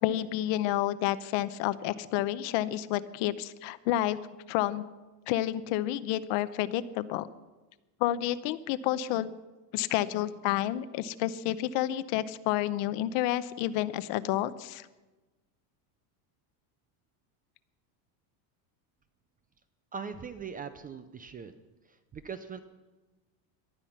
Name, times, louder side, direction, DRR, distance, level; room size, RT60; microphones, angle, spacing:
voice 1, 0.0-4.2 4.5-4.8 5.3-7.3 8.0-9.3 9.7-14.9, left 13 dB, 60° left, 14 dB, 0.9 m, -30 dB
voice 2, 19.9-21.5 21.8-22.6, right 6 dB, 20° right, 11 dB, 0.5 m, -41 dB
18.5 x 12.5 x 5.8 m, 1.2 s
cardioid pair, 145°, 50 cm